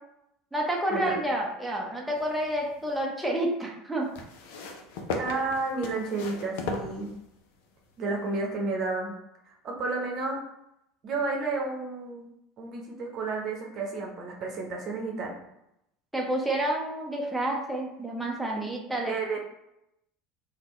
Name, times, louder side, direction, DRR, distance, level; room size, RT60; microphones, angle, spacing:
voice 1, 0.5-4.1 16.1-19.4, right 1 dB, 5° right, -2 dB, 0.7 m, -29 dB
sound 1, 2.2-3.0 4.1-7.6 8.5-8.6, left 3 dB, 65° left, 0.5 m, -37 dB
voice 2, 5.2-7.1 8.0-9.1 9.5-10.4 11.0-12.3 12.6-15.4 19.1-19.4, right 3 dB, 45° right, 0 dB, 0.8 m, -31 dB
3.5 x 2.2 x 3.1 m, 0.83 s
hypercardioid pair, 75°, 0 cm